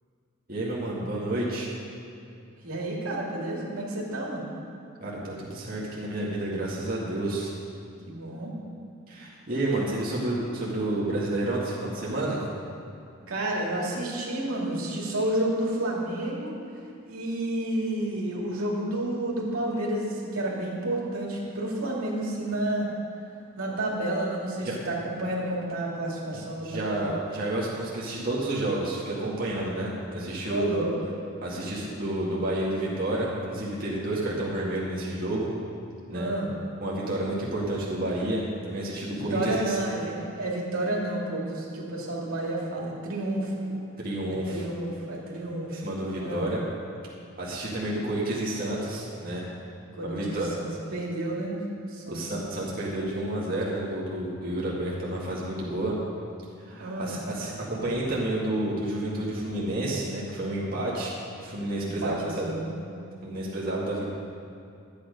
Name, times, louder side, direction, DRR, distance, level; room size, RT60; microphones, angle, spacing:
voice 1, 0.5-1.7 5.0-7.5 9.1-12.4 24.6-24.8 26.3-30.7 31.4-35.5 36.1-36.3 36.8-39.8 44.0-44.6 45.7-46.6 47.4-49.4 50.0-50.5 52.1-55.9 56.6-61.1 61.4-62.5 63.2-64.1, right 1 dB, 45° right, -6 dB, 1.9 m, -30 dB
voice 2, 2.6-4.4 8.1-8.5 13.3-16.5 17.1-22.9 23.6-27.1 30.4-30.9 36.1-36.6 39.3-43.8 44.3-45.8 46.2-46.5 49.9-51.6 51.9-52.2 56.8-57.2 62.0-62.8, right 1 dB, 90° right, -4 dB, 2.5 m, -30 dB
12.5 x 9.0 x 5.2 m, 2.6 s
head